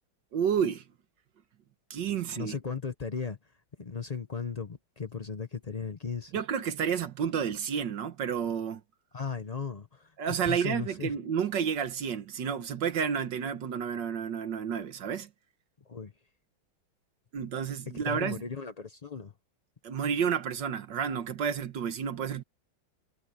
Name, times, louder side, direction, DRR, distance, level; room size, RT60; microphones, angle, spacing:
voice 1, 0.3-0.8 1.9-2.6 6.3-8.8 10.2-15.3 17.3-18.4 19.8-22.4, right 7 dB, 65° right, 1.6 m, -30 dB
voice 2, 2.4-3.4 3.8-6.4 9.1-11.2 15.8-16.1 18.0-19.3, left 5 dB, 75° left, 0.3 m, -36 dB
omnidirectional pair, 2.3 m